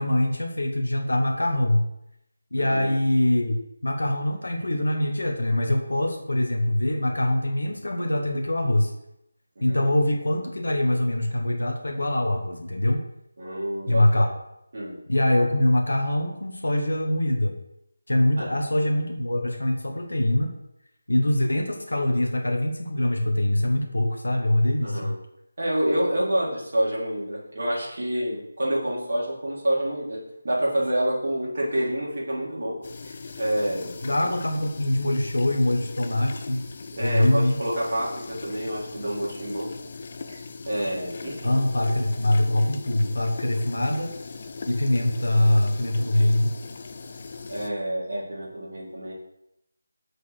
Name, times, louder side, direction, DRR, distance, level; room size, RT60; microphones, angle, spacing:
voice 1, 0.0-1.9 2.5-3.5 3.8-8.9 9.6-13.0 13.9-14.3 15.1-17.6 18.1-20.5 21.1-25.1 34.0-36.7 37.0-37.6 41.4-44.1 44.6-46.5, left 1 dB, 70° left, 3 dB, 1.1 m, -23 dB
voice 2, 2.5-2.9 9.6-9.9 13.4-14.3 14.7-15.0 18.4-18.5 24.8-25.1 25.6-32.8 33.0-33.9 36.9-39.7 40.3-40.4 40.7-41.5 47.5-49.1, right 1 dB, 55° right, -6 dB, 3.4 m, -28 dB
sound 1, 32.8-47.7, left 4 dB, 40° left, 0.7 m, -40 dB
6.5 x 4.9 x 6.3 m, 0.83 s
figure-of-eight pair, 160°, 0 cm